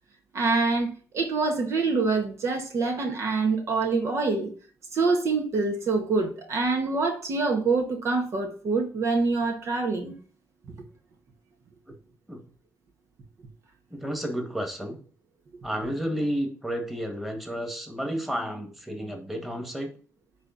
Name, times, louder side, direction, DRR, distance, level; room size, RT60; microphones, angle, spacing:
voice 1, 0.3-4.5 4.9-10.1, right 3 dB, 60° right, 1.7 m, -25 dB
voice 2, 13.9-15.0 15.6-19.9, equal, 5° right, 2.0 m, -31 dB
9.7 x 3.5 x 5.9 m
cardioid pair, 85°, 5 cm